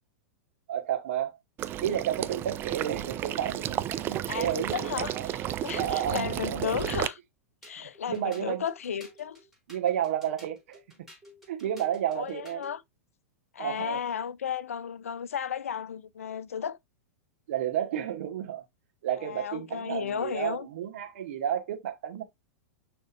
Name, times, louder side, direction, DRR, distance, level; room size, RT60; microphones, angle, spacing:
voice 1, 0.7-1.4 1.8-5.3 5.8-6.8 8.1-8.7 9.7-10.8 11.5-12.6 13.6-14.0 17.5-18.6 19.0-22.2, right 10 dB, 55° right, 1.5 m, -31 dB
Water / Liquid, 1.6-7.1, right 12 dB, 25° right, 0.5 m, -33 dB
voice 2, 4.2-7.2 7.6-9.4 12.1-12.8 13.5-16.8 19.2-20.7, left 8 dB, 65° left, 0.5 m, -34 dB
sound 1, 7.6-12.8, equal, ahead, 4.2 m, -53 dB
10.5 x 3.6 x 2.5 m
figure-of-eight pair, 95°, 8 cm